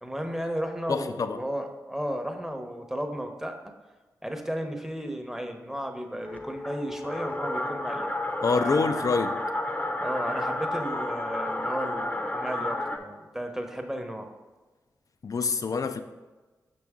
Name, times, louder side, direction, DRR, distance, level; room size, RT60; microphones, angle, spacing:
voice 1, 0.0-3.7 4.2-8.1 8.5-9.1 10.0-14.3, equal, 5° right, 0.9 m, -34 dB
voice 2, 0.9-1.4 8.4-9.4 15.2-16.0, left 4 dB, 55° left, 0.5 m, -26 dB
sound 1, 6.2-13.0, left 1 dB, 20° left, 0.8 m, -31 dB
6.0 x 6.0 x 3.6 m
cardioid pair, 45°, 7 cm